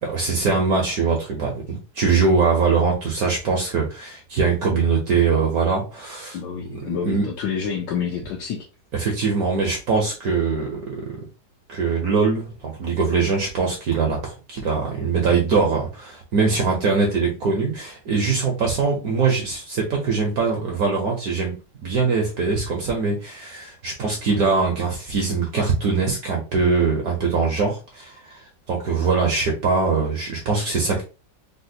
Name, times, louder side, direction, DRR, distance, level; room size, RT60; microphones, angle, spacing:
voice 1, 0.1-6.4 6.7-7.3 8.9-11.0 11.7-21.5 21.8-28.4 28.7-31.0, right 4 dB, 65° right, 0 dB, 0.9 m, -22 dB
voice 2, 6.3-8.6, left 7 dB, 75° left, 0 dB, 1.2 m, -28 dB
4.1 x 2.1 x 2.6 m, 0.31 s
omnidirectional pair, 2.2 m